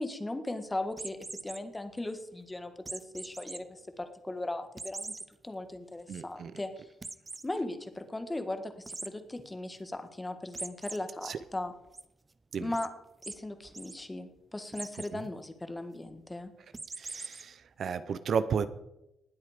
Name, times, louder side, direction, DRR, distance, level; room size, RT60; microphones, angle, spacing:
voice 1, 0.0-5.1 5.4-6.9 7.4-11.7 12.6-12.9 13.3-16.5, left 2 dB, 15° left, 8 dB, 1.6 m, -38 dB
sound 1, 0.9-1.6 2.9-3.6 4.0-4.1 4.8-5.3 5.8-5.9 6.1-6.2 7.0-7.5 8.9-9.1 10.5-11.0 11.4-12.0 12.7-12.9 13.2-13.4 13.6-14.0 14.7-15.1 16.7-17.4, right 3 dB, 20° right, 0.7 m, -41 dB
voice 2, 6.1-6.5 11.2-11.4 12.5-12.7 17.0-18.7, right 6 dB, 55° right, 13 dB, 0.7 m, -33 dB
19.5 x 8.3 x 5.1 m, 0.88 s
cardioid pair, 90°, 0 cm